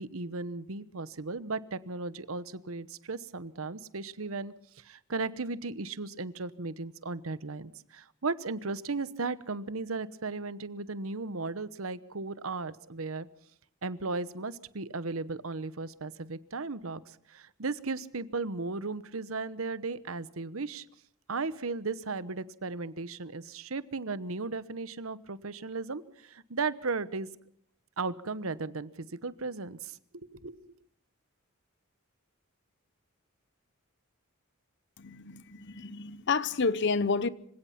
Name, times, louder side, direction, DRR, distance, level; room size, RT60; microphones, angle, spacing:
voice 1, 0.0-13.3 13.8-20.8 21.3-27.3 28.0-30.7, right 3 dB, 75° right, 1.0 m, -36 dB
voice 2, 35.0-37.3, left 4 dB, 55° left, 0.8 m, -30 dB
26.0 x 17.0 x 5.9 m
head